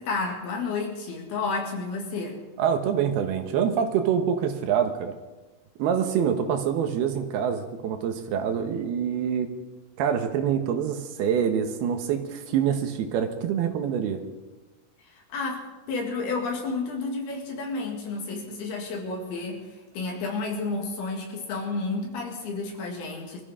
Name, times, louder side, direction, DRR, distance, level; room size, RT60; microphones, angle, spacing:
voice 1, 0.0-2.4 15.0-23.4, left 3 dB, 85° left, 1 dB, 4.2 m, -31 dB
voice 2, 2.6-5.1 5.8-9.5 10.0-14.2, right 8 dB, 85° right, 7 dB, 3.2 m, -25 dB
24.0 x 14.5 x 3.8 m, 1.2 s
omnidirectional pair, 4.4 m